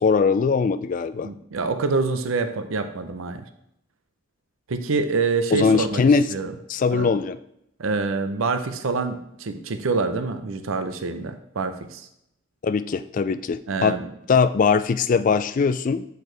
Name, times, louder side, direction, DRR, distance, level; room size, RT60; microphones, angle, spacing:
voice 1, 0.0-1.3 5.5-6.3 6.7-7.4 12.6-14.0 14.3-16.0, left 5 dB, 40° left, 13 dB, 0.3 m, -21 dB
voice 2, 1.2-3.4 4.7-6.0 6.3-6.5 6.9-7.1 7.8-12.1 13.7-14.1, right 4 dB, 85° right, 8 dB, 0.6 m, -26 dB
8.0 x 4.5 x 3.3 m, 0.77 s
head